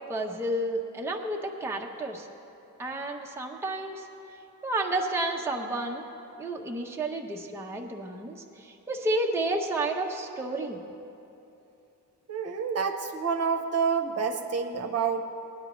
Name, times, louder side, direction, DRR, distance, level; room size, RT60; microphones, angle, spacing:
voice 1, 0.1-2.3 2.8-4.1 4.6-6.0 6.4-10.8, right 2 dB, 10° right, 0 dB, 0.6 m, -31 dB
voice 2, 12.3-15.2, right 6 dB, 50° right, 4 dB, 0.8 m, -28 dB
18.0 x 10.0 x 3.0 m, 2.9 s
wide cardioid pair, 145°, 32 cm